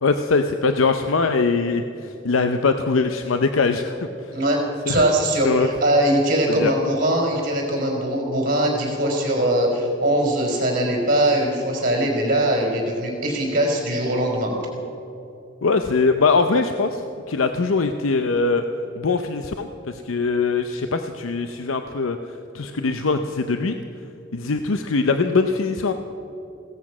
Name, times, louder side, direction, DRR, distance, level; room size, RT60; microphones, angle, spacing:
voice 1, 0.0-4.3 4.9-5.0 5.4-5.7 6.5-6.7 15.6-17.0 17.3-18.6 19.0-22.2 22.5-23.8 24.3-25.9, left 4 dB, 80° left, 7 dB, 0.7 m, -22 dB
voice 2, 4.9-14.5, right 1 dB, 45° right, 0 dB, 4.5 m, -21 dB
17.0 x 13.5 x 6.1 m, 2.9 s
head